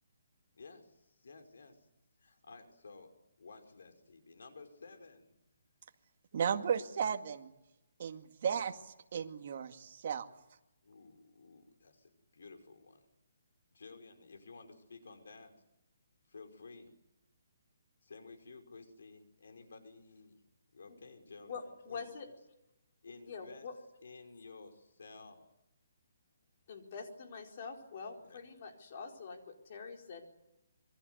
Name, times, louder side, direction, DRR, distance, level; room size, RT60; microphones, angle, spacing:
voice 1, 0.6-1.9 2.2-5.3 10.8-13.0 13.7-15.6 16.3-16.9 18.0-20.4 20.7-22.0 23.0-23.7 24.0-25.5 28.2-28.5, left 4 dB, 75° left, 5 dB, 5.4 m, -54 dB
voice 2, 6.3-7.5 8.0-10.3, right 7 dB, 45° right, 5 dB, 2.1 m, -35 dB
voice 3, 21.4-22.3 23.2-23.7 26.7-30.2, left 5 dB, 40° left, 2 dB, 4.5 m, -45 dB
27.0 x 23.0 x 8.1 m, 0.90 s
hypercardioid pair, 170°, 0 cm